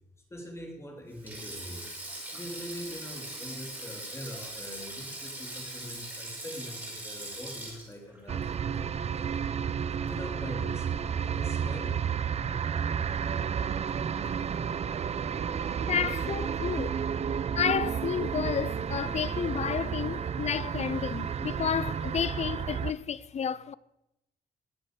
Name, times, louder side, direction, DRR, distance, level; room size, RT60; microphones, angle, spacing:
voice 1, 0.3-1.9 2.3-9.1 10.0-12.0, left 1 dB, 15° left, 3.1 m, -43 dB
Sink (filling or washing), 1.1-9.6 9.9-10.1 11.3-11.5, right 1 dB, 10° right, 5.1 m, -41 dB
sound 1, 8.3-22.9, right 7 dB, 40° right, 0.6 m, -31 dB
voice 2, 15.8-17.0 17.6-23.7, left 8 dB, 40° left, 0.5 m, -31 dB
20.0 x 7.8 x 6.7 m
wide cardioid pair, 155°, 17 cm